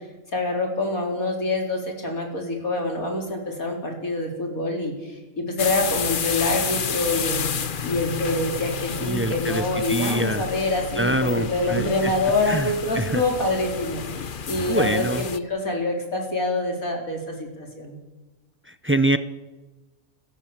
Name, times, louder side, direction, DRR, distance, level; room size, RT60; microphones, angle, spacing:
voice 1, 0.3-7.5 7.8-18.0, left 2 dB, 75° left, 1 dB, 4.9 m, -26 dB
sound 1, 5.6-15.4, left 6 dB, 40° left, 0.9 m, -30 dB
voice 2, 9.0-10.5 11.0-12.1 12.5-13.2 14.7-15.2 18.7-19.2, right 1 dB, 15° right, 12 dB, 0.4 m, -25 dB
29.0 x 15.5 x 7.4 m, 1.2 s
omnidirectional pair, 1.5 m